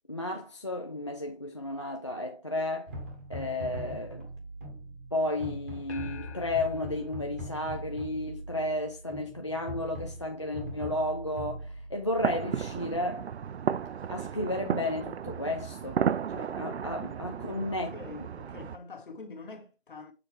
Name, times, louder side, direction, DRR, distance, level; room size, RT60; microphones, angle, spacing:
voice 1, 0.1-2.9 3.3-4.3 5.1-13.3 14.1-16.0 16.3-17.9, left 1 dB, 30° left, 0.5 m, -33 dB
sound 1, 2.9-13.0, equal, 15° right, 1.0 m, -41 dB
sound 2, 5.9-8.5, left 7 dB, 85° left, 1.0 m, -47 dB
sound 3, 12.2-18.8, right 8 dB, 70° right, 0.6 m, -34 dB
voice 2, 17.5-20.1, left 4 dB, 50° left, 1.7 m, -45 dB
6.7 x 4.7 x 3.5 m
hypercardioid pair, 175°, 33 cm